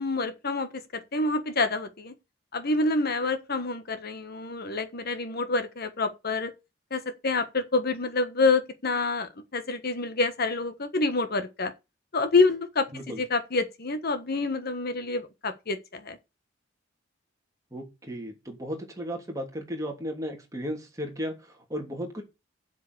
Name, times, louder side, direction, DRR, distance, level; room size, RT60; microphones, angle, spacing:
voice 1, 0.0-2.1 2.5-6.5 6.9-11.7 12.1-16.2, left 3 dB, 55° left, 1.4 m, -27 dB
voice 2, 17.7-22.2, equal, 15° right, 3.2 m, -35 dB
8.0 x 7.7 x 6.8 m
head